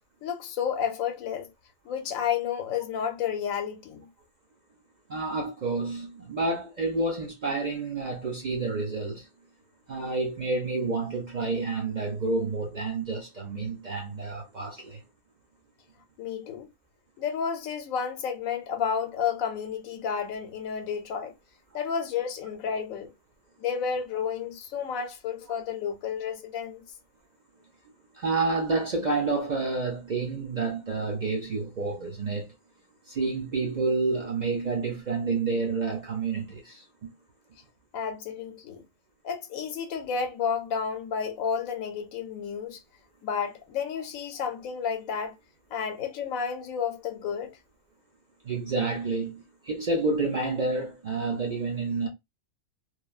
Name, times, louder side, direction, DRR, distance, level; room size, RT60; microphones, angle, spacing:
voice 1, 0.2-1.5 1.8-4.1 16.2-16.7 17.2-21.4 21.7-23.1 23.6-26.9 37.9-38.8 39.2-42.8 43.2-45.4 45.7-47.6, left 7 dB, 85° left, 1.1 m, -31 dB
voice 2, 5.1-9.3 9.9-15.0 28.1-32.5 33.1-37.1 48.4-52.1, right 3 dB, 50° right, 0.6 m, -29 dB
3.1 x 2.2 x 2.3 m
omnidirectional pair, 1.4 m